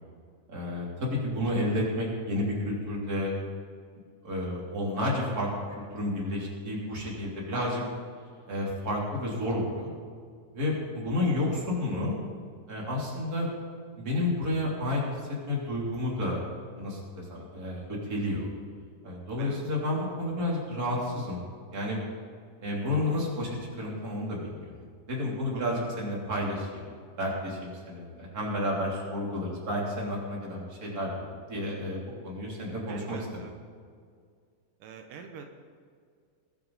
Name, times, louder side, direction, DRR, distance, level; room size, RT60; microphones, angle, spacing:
voice 1, 0.5-3.3 4.2-5.5 5.9-7.8 8.5-9.9 10.5-12.1 12.7-13.5 14.0-15.0 15.5-16.4 16.7-18.5 19.0-21.4 21.7-22.0 22.6-24.7 25.1-26.9 27.2-33.2, left 1 dB, 30° right, -4 dB, 3.4 m, -31 dB
voice 2, 7.5-7.8 19.4-19.6 25.5-26.0 32.9-33.5 34.8-35.6, right 6 dB, 85° right, 4 dB, 2.6 m, -43 dB
21.5 x 9.2 x 4.1 m, 2.1 s
omnidirectional pair, 3.7 m